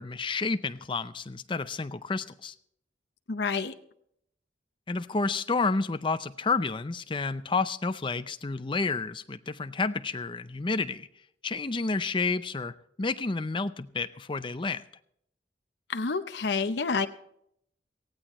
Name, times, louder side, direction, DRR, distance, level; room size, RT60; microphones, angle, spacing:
voice 1, 0.0-2.5 4.9-11.1 11.4-14.8, left 4 dB, 25° left, 12 dB, 0.5 m, -30 dB
voice 2, 3.3-3.7 15.9-17.1, left 4 dB, 65° left, 8 dB, 0.7 m, -28 dB
19.0 x 16.0 x 3.1 m, 0.72 s
head